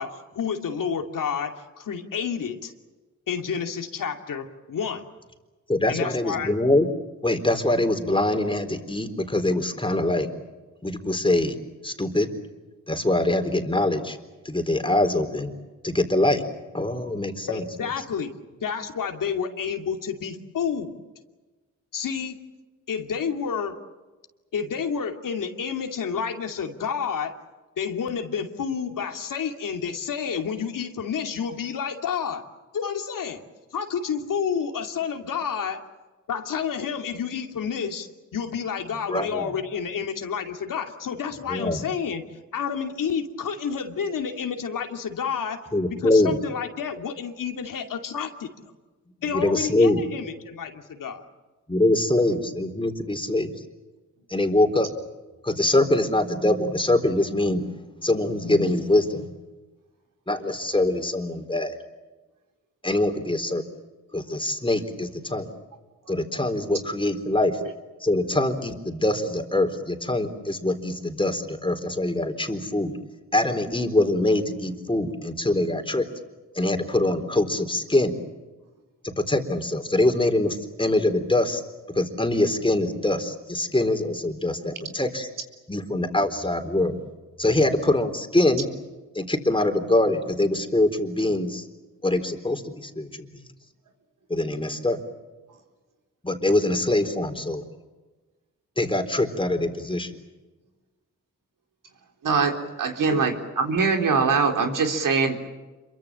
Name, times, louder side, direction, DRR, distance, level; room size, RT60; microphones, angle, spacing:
voice 1, 0.0-2.7 3.3-5.0 5.9-6.5 17.5-18.3 18.6-21.0 21.9-22.4 22.9-23.8 24.5-27.3 27.8-32.4 32.7-33.4 33.7-35.8 36.3-42.2 42.5-45.6 46.0-48.5 49.2-51.2 103.0-103.2, left 7 dB, 80° left, 4 dB, 2.7 m, -30 dB
voice 2, 5.7-6.9 7.2-10.3 10.8-11.6 11.8-12.3 12.9-14.2 14.4-15.5 15.8-16.4 16.7-17.6 39.1-39.6 41.5-41.8 45.7-46.4 49.3-50.0 51.7-53.5 54.3-54.9 55.4-59.3 60.3-61.8 62.8-63.6 64.1-65.5 66.1-67.6 68.0-72.9 73.3-76.1 76.5-78.2 79.2-81.6 81.9-85.3 85.7-87.0 87.4-88.7 89.1-91.7 92.0-93.5 94.3-95.0 96.2-97.6 98.8-100.2, left 1 dB, 15° left, 6 dB, 4.1 m, -23 dB
voice 3, 102.2-105.5, right 4 dB, 75° right, 4 dB, 3.9 m, -23 dB
27.0 x 23.5 x 7.6 m, 1.2 s
cardioid pair, 65°, 32 cm